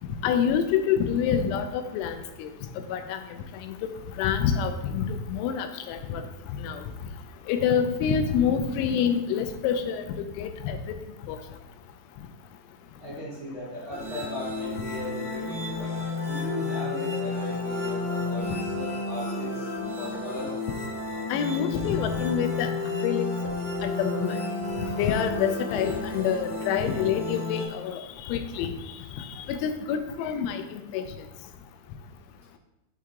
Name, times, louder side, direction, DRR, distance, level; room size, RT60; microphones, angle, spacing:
voice 1, 0.2-2.5 2.9-3.2 3.6-3.9 4.2-6.3 6.6-6.8 7.5-10.0 10.4-10.8 11.3-11.4 21.3-22.7 23.0-23.3 23.8-24.4 25.0-28.7 29.5-31.0, left 8 dB, 90° left, 8 dB, 3.0 m, -27 dB
voice 2, 13.0-19.6 19.9-20.5, left 1 dB, 30° right, -10 dB, 1.8 m, -37 dB
sound 1, 13.9-27.6, left 3 dB, 35° left, 1.1 m, -31 dB
6.4 x 5.7 x 3.6 m, 0.95 s
omnidirectional pair, 5.3 m